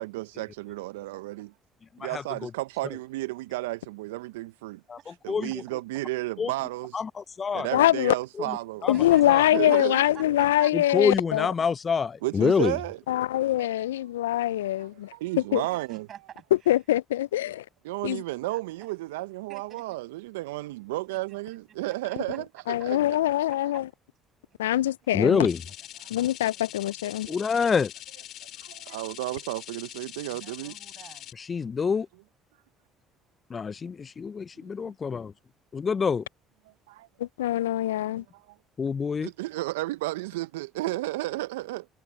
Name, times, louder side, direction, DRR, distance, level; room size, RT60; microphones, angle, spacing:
voice 1, 0.0-1.5 2.0-4.8 5.2-7.0 7.5-8.9 9.5-10.0 12.2-13.0 15.1-16.1 17.8-23.0 26.0-26.1 27.3-27.4 28.6-30.7 34.8-34.9 36.9-37.1 38.1-38.4 39.2-41.9, right 19 dB, 80° right, 0.7 m, -33 dB
voice 2, 2.0-2.5 4.9-5.0 5.3-5.5 6.4-6.5 6.9-7.7 8.4-8.6 8.8-9.0 9.3-9.4 10.7-12.8 25.1-25.6 27.3-27.9 31.4-32.1 33.5-35.3 35.7-36.2 38.8-39.3, left 5 dB, 35° left, 0.6 m, -26 dB
voice 3, 7.7-8.1 8.9-11.5 13.1-15.1 15.5-15.6 16.7-17.6 18.0-18.2 22.7-23.9 24.6-25.5 26.1-27.3 37.2-38.2, left 13 dB, 80° left, 0.4 m, -24 dB
voice 4, 8.9-10.7 13.6-13.9 14.8-15.0 15.7-16.8 18.5-18.6 19.5-20.0 21.1-22.4 23.0-23.1 26.4-27.0 30.3-31.3 31.9-32.0, right 10 dB, 55° right, 8.0 m, -48 dB
sound 1, 25.5-31.3, left 13 dB, 60° left, 2.8 m, -43 dB
hypercardioid pair, 55°, 0 cm